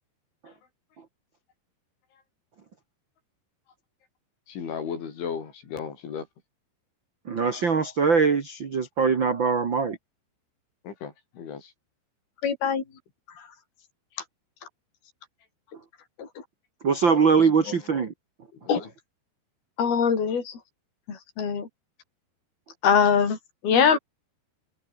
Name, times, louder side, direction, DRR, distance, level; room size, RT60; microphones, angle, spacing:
voice 1, 4.5-6.3 10.8-11.7 13.4-13.5 17.4-17.8 18.5-18.9, left 6 dB, 90° left, 7.3 m, -36 dB
voice 2, 7.2-10.0 16.8-18.1, right 5 dB, 80° right, 1.0 m, -22 dB
voice 3, 12.4-12.8 16.2-16.3 18.7-18.8 19.8-20.6 21.1-21.7 22.8-23.4 23.6-24.0, left 7 dB, 55° left, 6.9 m, -22 dB
omnidirectional pair, 5.3 m